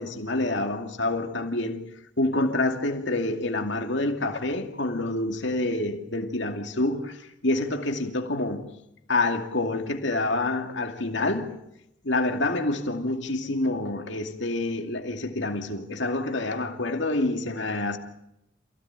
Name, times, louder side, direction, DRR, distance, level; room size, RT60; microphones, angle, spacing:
voice 1, 0.0-1.8 2.2-8.8 9.1-11.6 12.0-18.0, left 2 dB, 65° left, 2.5 m, -27 dB
28.0 x 16.5 x 9.0 m
head